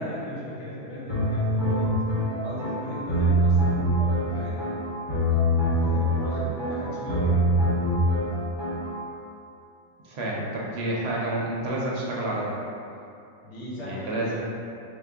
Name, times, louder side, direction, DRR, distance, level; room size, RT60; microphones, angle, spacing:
voice 1, 0.0-1.9 2.4-4.7 5.8-7.5 10.2-10.4 13.4-14.4, left 1 dB, 70° left, -7 dB, 1.1 m, -37 dB
sound 1, 1.1-9.0, equal, 25° left, 0.8 m, -24 dB
voice 2, 10.0-12.6 13.8-14.4, right 1 dB, 65° right, -4 dB, 0.8 m, -29 dB
3.6 x 2.1 x 3.4 m, 2.6 s
omnidirectional pair, 1.2 m